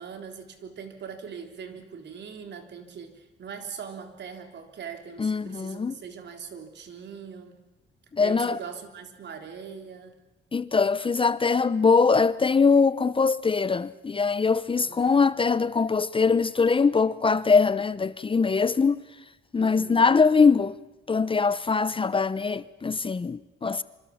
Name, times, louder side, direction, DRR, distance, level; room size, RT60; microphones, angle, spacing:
voice 1, 0.0-7.6 8.2-10.2 14.8-15.2 19.6-20.1, right 6 dB, 60° right, 3.5 m, -41 dB
voice 2, 5.2-5.9 8.1-8.6 10.5-19.0 19.5-20.8 21.1-23.8, left 5 dB, 25° left, 0.8 m, -22 dB
25.5 x 25.5 x 7.1 m
cardioid pair, 90°, 20 cm